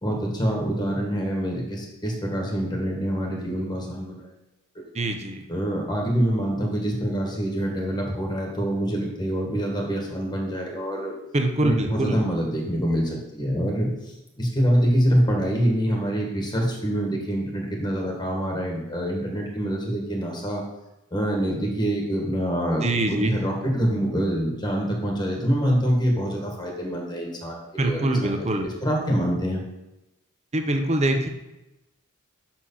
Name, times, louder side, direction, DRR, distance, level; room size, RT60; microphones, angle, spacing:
voice 1, 0.0-4.3 4.7-4.9 5.5-11.1 11.6-13.9 14.4-20.6 21.1-28.4 28.8-29.6, equal, 20° left, -1 dB, 1.5 m, -25 dB
voice 2, 4.9-5.5 11.3-12.2 22.8-23.4 27.8-28.7 30.5-31.3, right 2 dB, 30° right, 4 dB, 0.8 m, -24 dB
6.3 x 4.4 x 5.7 m, 0.95 s
head